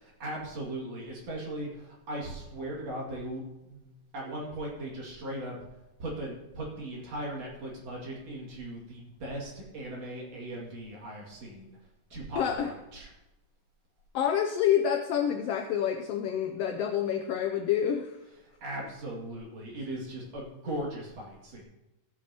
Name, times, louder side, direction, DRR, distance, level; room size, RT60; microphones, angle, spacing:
voice 1, 0.0-5.6 6.0-11.8 12.1-13.1 18.6-21.6, right 1 dB, 60° right, -3 dB, 3.4 m, -38 dB
voice 2, 12.4-12.7 14.1-18.2, left 9 dB, 80° left, 5 dB, 1.4 m, -28 dB
15.0 x 8.4 x 2.9 m, 0.99 s
omnidirectional pair, 3.4 m